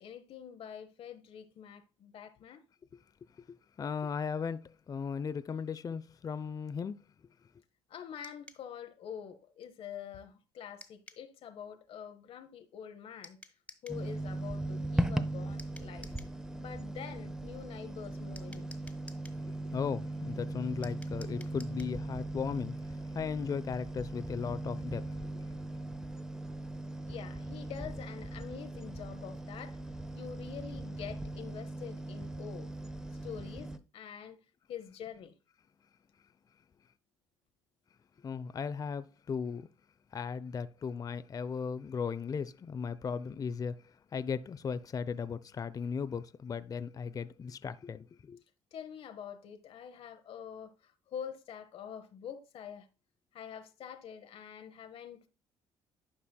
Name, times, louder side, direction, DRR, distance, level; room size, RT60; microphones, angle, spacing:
voice 1, 0.0-2.6 7.9-13.4 13.8-16.1 16.6-18.7 27.1-29.8 30.1-32.7 33.2-34.4 34.7-35.3 48.7-52.9 53.3-55.3, left 8 dB, 55° left, 0.8 m, -46 dB
voice 2, 3.5-7.0 19.4-22.8 23.1-25.1 25.3-25.4 38.2-39.7 40.1-43.8 44.1-48.4, left 6 dB, 35° left, 0.5 m, -37 dB
sound 1, 8.2-8.7 10.8-11.3 13.2-14.0 15.6-16.4 18.4-19.4 20.8-22.0, left 2 dB, 10° left, 1.5 m, -53 dB
sound 2, 13.9-33.8, right 1 dB, 5° right, 0.7 m, -39 dB
11.5 x 5.4 x 2.3 m
hypercardioid pair, 55°, 11 cm